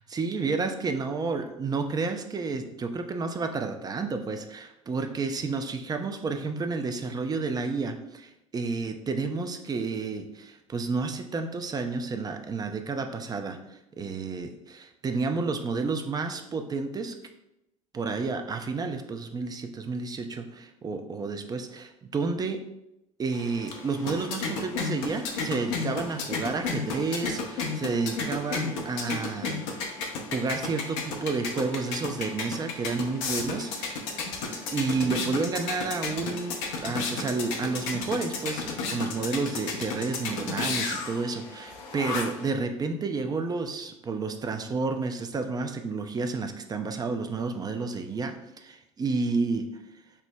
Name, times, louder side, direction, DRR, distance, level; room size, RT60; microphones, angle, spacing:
voice 1, 0.1-17.1 17.9-22.6 23.2-29.6 30.3-34.1 34.7-49.7, right 4 dB, 25° right, 6 dB, 0.4 m, -31 dB
sound 1, 23.3-42.5, left 4 dB, 65° left, 0.6 m, -33 dB
5.5 x 2.0 x 2.2 m, 0.86 s
hypercardioid pair, 65°, 17 cm